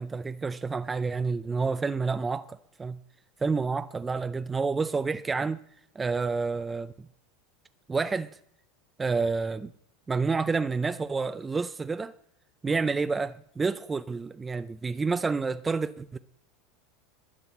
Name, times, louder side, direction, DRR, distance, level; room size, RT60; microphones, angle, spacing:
voice 1, 0.0-3.0 3.4-5.6 6.0-7.1 7.9-8.4 9.0-9.7 10.1-12.1 12.6-16.2, right 4 dB, 15° right, 0.5 m, -29 dB
11.0 x 10.0 x 7.8 m
supercardioid pair, 135°, 0 cm